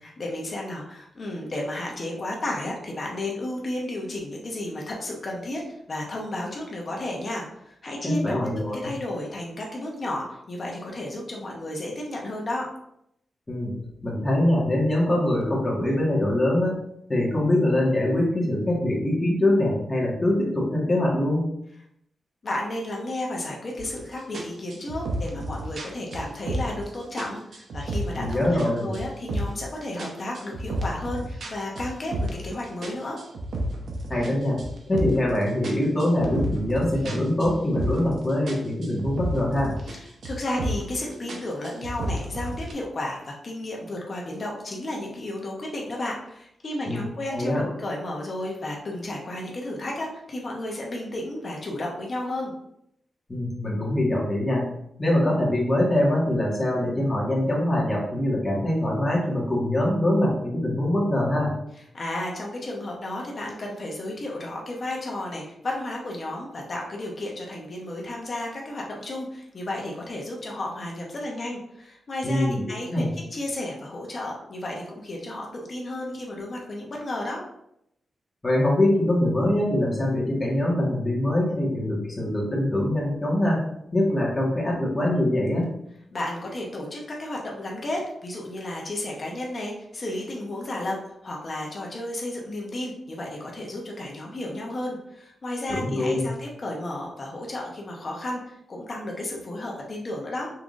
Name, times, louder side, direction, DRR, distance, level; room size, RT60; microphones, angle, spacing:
voice 1, 0.0-12.7 22.4-33.2 39.9-52.5 61.9-77.4 86.1-91.0 91.2-100.5, left 1 dB, 40° left, -1 dB, 0.9 m, -33 dB
voice 2, 8.0-8.8 13.5-13.8 14.0-16.8 17.1-21.5 28.2-28.9 34.1-34.6 34.9-39.7 46.8-47.0 47.3-47.6 53.3-54.7 55.0-61.5 72.2-72.6 72.9-73.1 78.4-83.6 83.9-85.6 95.7-96.3, left 1 dB, 15° left, -4 dB, 1.5 m, -23 dB
sound 1, 23.8-24.0 24.3-26.9 27.2-28.7 28.9-29.7 30.0-32.5 32.8-35.3 35.6-38.2 38.5-40.0 40.2-40.9 41.3-42.7, right 1 dB, 65° right, 0.8 m, -31 dB
5.6 x 3.7 x 2.5 m, 0.76 s
wide cardioid pair, 140°, 0 cm